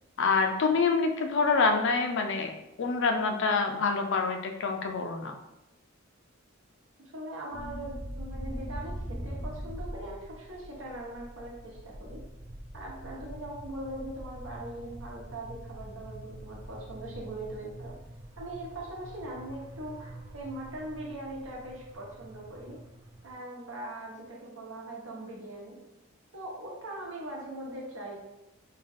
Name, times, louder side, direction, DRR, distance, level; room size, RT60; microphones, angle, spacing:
voice 1, 0.2-2.5 2.8-5.4, left 4 dB, 60° left, 5 dB, 0.4 m, -26 dB
voice 2, 7.0-12.2 12.7-18.0 18.4-22.8 23.2-25.8 26.3-28.2, right 1 dB, 70° right, -3 dB, 1.1 m, -41 dB
sound 1, 7.5-23.3, equal, 20° right, 0.4 m, -43 dB
3.8 x 2.3 x 3.5 m, 0.94 s
head